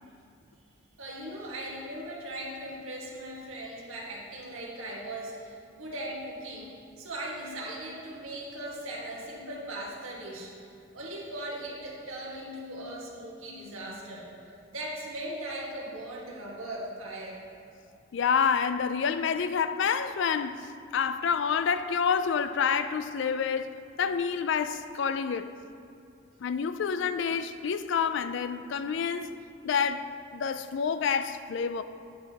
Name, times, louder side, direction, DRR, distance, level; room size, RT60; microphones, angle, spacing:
voice 1, 1.0-10.5 10.9-14.3 14.7-17.4, right 1 dB, 85° right, 1.7 m, -39 dB
voice 2, 18.1-20.7 20.9-25.5 26.4-29.3 29.6-30.1 30.3-31.8, left 6 dB, 60° left, 0.3 m, -28 dB
9.2 x 8.5 x 2.9 m
head